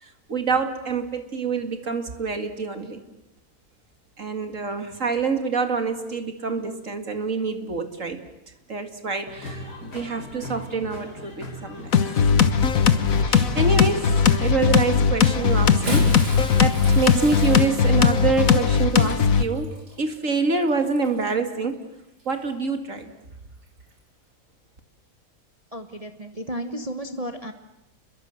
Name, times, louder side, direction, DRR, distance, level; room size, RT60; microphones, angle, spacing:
voice 1, 0.0-3.0 4.2-8.2 8.7-11.9 13.2-16.1 16.6-19.7 20.0-21.8 22.3-23.1, right 4 dB, 50° right, 7 dB, 2.5 m, -26 dB
sound 1, 9.3-14.3, left 1 dB, 80° left, 4.6 m, -39 dB
sound 2, 11.9-19.4, left 6 dB, 60° left, 1.6 m, -19 dB
Bathtub (filling or washing) / Splash splatter, 15.6-21.3 22.2-22.4 23.8-23.9, left 1 dB, 80° right, 5.2 m, -35 dB
voice 2, 25.7-27.5, right 1 dB, 25° right, 7 dB, 1.3 m, -33 dB
30.0 x 22.0 x 7.9 m, 0.86 s
omnidirectional pair, 1.7 m